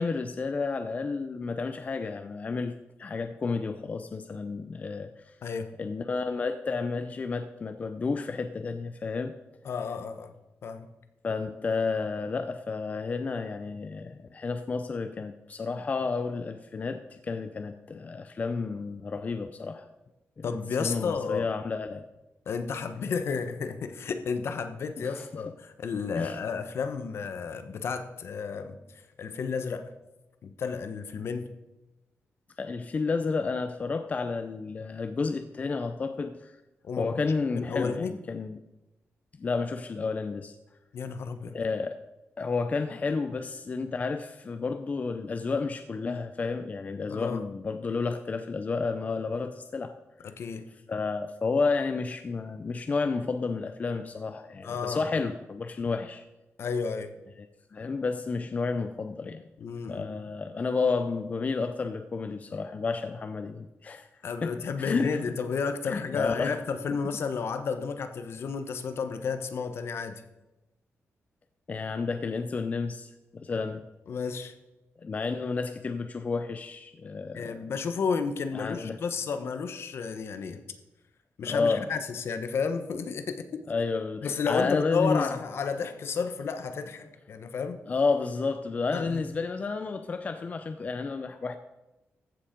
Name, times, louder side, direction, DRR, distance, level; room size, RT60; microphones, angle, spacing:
voice 1, 0.0-5.4 5.8-9.3 11.2-19.9 20.4-22.0 25.0-25.3 26.2-26.4 32.6-36.6 37.0-38.6 39.4-40.6 41.5-42.0 42.4-49.9 50.9-56.2 57.7-59.4 59.9-64.1 64.4-65.3 65.9-67.0 71.7-73.8 75.0-77.6 78.5-79.0 81.4-81.9 83.7-85.3 87.9-91.6, left 4 dB, 30° left, 8 dB, 0.5 m, -31 dB
voice 2, 5.4-5.7 9.6-10.3 10.6-10.9 20.4-21.5 22.5-29.9 30.4-31.5 36.8-37.2 37.6-38.1 40.9-41.6 47.1-47.4 50.2-50.6 54.6-55.0 56.6-57.1 59.6-60.1 64.2-70.2 74.1-74.5 77.3-80.6 81.4-83.6 84.2-87.8 88.9-89.2, left 5 dB, 60° left, 9 dB, 1.1 m, -32 dB
14.5 x 7.0 x 5.2 m, 0.98 s
wide cardioid pair, 150°, 5 cm